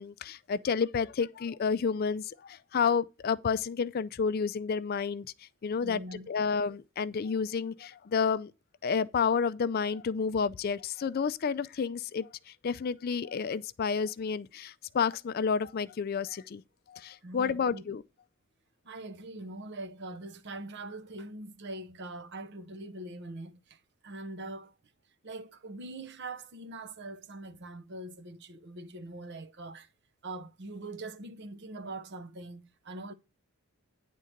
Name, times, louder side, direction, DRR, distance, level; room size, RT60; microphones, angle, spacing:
voice 1, 0.0-5.3 5.6-6.0 6.3-8.5 8.8-16.6 16.9-18.0, left 6 dB, 45° left, 0.3 m, -30 dB
voice 2, 5.8-6.3 17.2-17.8 18.8-24.7 25.2-29.9 30.2-33.1, right 2 dB, 50° right, 0.7 m, -43 dB
9.8 x 3.7 x 6.4 m
head